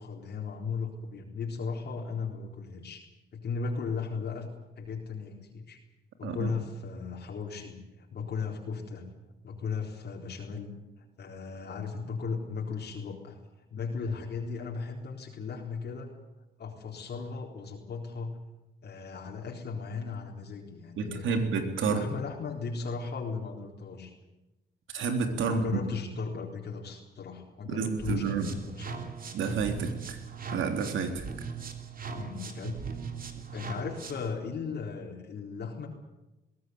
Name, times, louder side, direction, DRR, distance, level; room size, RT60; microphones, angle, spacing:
voice 1, 0.0-3.0 3.3-4.5 4.8-5.8 6.2-9.1 9.4-13.4 13.7-16.1 16.6-18.4 18.8-21.5 21.9-24.1 25.5-29.1 32.1-32.8 33.5-35.9, left 5 dB, 55° left, -1 dB, 4.1 m, -36 dB
voice 2, 21.0-22.1 24.9-25.7 27.7-28.5 29.3-30.2 30.5-31.2, right 5 dB, 75° right, 6 dB, 3.5 m, -30 dB
sound 1, 28.0-34.3, right 5 dB, 45° right, 3.2 m, -39 dB
21.0 x 17.5 x 9.6 m, 1.0 s
cardioid pair, 90°, 20 cm